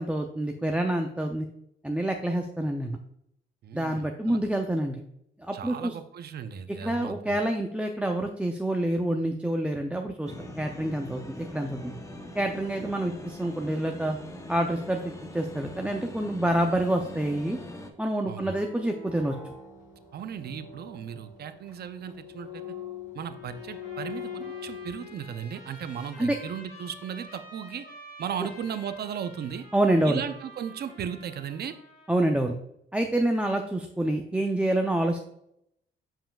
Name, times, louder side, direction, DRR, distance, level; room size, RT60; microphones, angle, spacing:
voice 1, 0.0-1.5 1.8-3.0 3.7-5.0 5.4-5.9 6.8-10.3 10.6-11.9 12.4-14.2 14.5-17.6 18.0-19.3 26.2-26.4 29.7-30.2 32.1-32.6 32.9-35.2, right 1 dB, 5° right, 3 dB, 0.5 m, -27 dB
voice 2, 3.6-4.4 5.5-7.4 18.3-18.6 20.1-22.6 23.1-27.9 28.2-29.7 30.0-31.7, right 8 dB, 55° right, 10 dB, 0.6 m, -36 dB
sound 1, 10.3-17.9, left 1 dB, 15° left, 0.9 m, -42 dB
sound 2, 18.3-25.3, left 7 dB, 65° left, 2.1 m, -42 dB
Trumpet, 23.2-32.4, equal, 50° left, 2.2 m, -49 dB
7.1 x 5.6 x 2.4 m, 0.75 s
cardioid pair, 90°, 20 cm